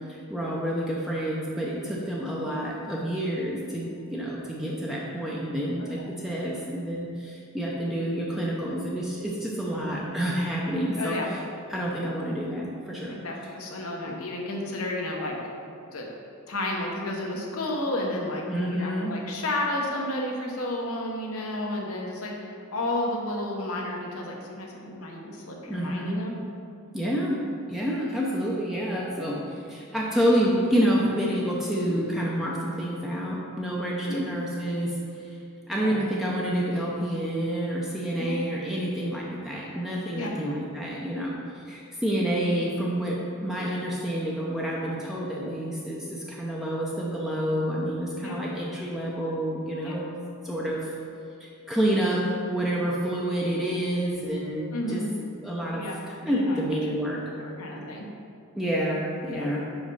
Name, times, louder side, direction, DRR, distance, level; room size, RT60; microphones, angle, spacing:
voice 1, 0.1-11.4 11.7-13.1 18.5-19.2 25.7-26.2 26.9-27.4 27.7-35.4 35.7-41.3 41.7-50.2 50.4-51.0 51.4-55.0 55.4-57.2 58.5-59.7, equal, ahead, -5 dB, 0.6 m, -28 dB
voice 2, 11.0-11.3 13.1-15.4 15.9-16.1 16.5-26.3 31.9-32.0 34.1-34.2 35.7-35.9 38.2-38.4 40.1-40.3 41.2-41.3 48.2-48.4 49.8-50.0 54.7-55.1 55.7-58.1 59.3-59.5, left 1 dB, 85° left, -1 dB, 1.1 m, -32 dB
5.1 x 5.1 x 5.5 m, 2.4 s
head